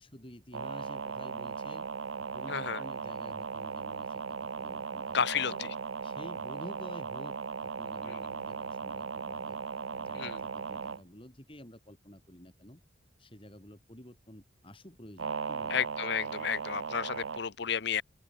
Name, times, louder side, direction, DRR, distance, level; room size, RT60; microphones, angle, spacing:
voice 1, 0.0-1.9 2.3-5.7 6.0-9.6 9.9-12.8 13.2-15.9, equal, 25° left, 3.7 m, -50 dB
sound 1, 0.5-11.0 15.2-17.4, right 5 dB, 70° right, 0.7 m, -37 dB
voice 2, 5.1-5.5 8.1-8.2 10.1-10.4 15.7-18.0, left 7 dB, 55° left, 0.7 m, -32 dB
open air
head